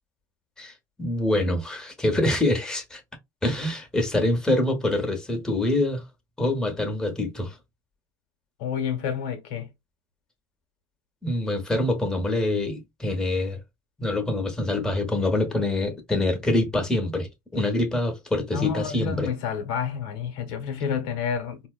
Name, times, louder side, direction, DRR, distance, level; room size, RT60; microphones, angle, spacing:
voice 1, 1.0-3.0 3.4-6.0 6.4-7.6 11.2-13.6 14.0-19.3, left 1 dB, 5° left, 0.9 m, -25 dB
voice 2, 8.6-9.7 18.5-21.7, left 7 dB, 70° left, 0.9 m, -29 dB
4.1 x 2.1 x 2.3 m
supercardioid pair, 105°, 10 cm